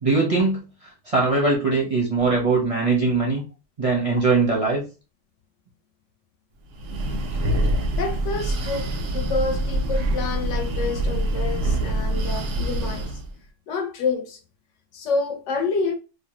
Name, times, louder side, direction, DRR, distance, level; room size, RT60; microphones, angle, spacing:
voice 1, 0.0-0.6 1.1-3.4 3.8-4.8, right 3 dB, 40° right, 0.5 m, -21 dB
Breathing, 6.7-13.3, right 1 dB, 85° right, 1.0 m, -25 dB
voice 2, 7.9-13.1 13.7-14.4 14.9-15.9, left 4 dB, 70° left, 0.9 m, -28 dB
2.6 x 2.0 x 2.9 m
omnidirectional pair, 1.3 m